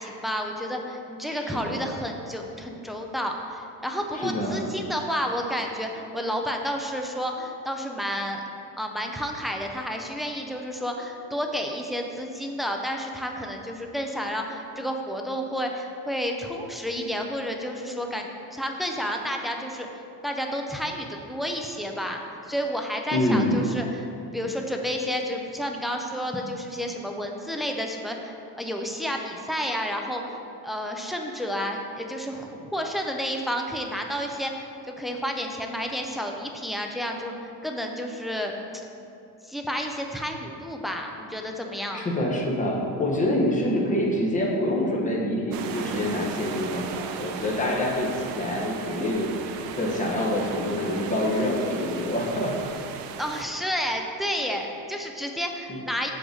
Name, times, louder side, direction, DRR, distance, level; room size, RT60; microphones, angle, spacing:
voice 1, 0.0-8.4 8.8-19.9 20.2-34.7 35.0-38.9 39.4-42.0 53.2-56.1, equal, ahead, 2 dB, 0.3 m, -31 dB
voice 2, 1.3-1.9 4.1-4.6 23.1-23.6 41.9-49.3 49.8-52.7 55.7-55.8, left 1 dB, 20° left, -1 dB, 1.0 m, -26 dB
sound 1, 45.5-53.4, right 7 dB, 80° right, 0.6 m, -37 dB
7.7 x 3.9 x 6.4 m, 2.8 s
cardioid pair, 170°, 35 cm